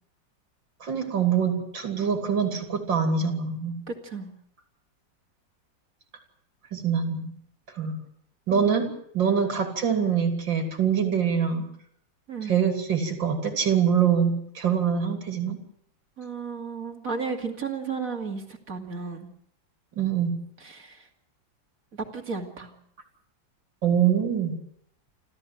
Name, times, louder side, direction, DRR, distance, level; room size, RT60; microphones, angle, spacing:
voice 1, 0.8-3.8 6.7-7.3 7.8-8.0 8.5-11.7 12.5-15.6 20.0-20.4 23.8-24.6, right 7 dB, 80° right, 4 dB, 3.5 m, -24 dB
voice 2, 3.9-4.3 8.5-8.8 12.3-12.6 16.2-19.3 20.6-21.1 21.9-22.7, right 5 dB, 45° right, 4 dB, 2.9 m, -34 dB
28.0 x 14.5 x 7.4 m, 0.68 s
omnidirectional pair, 2.0 m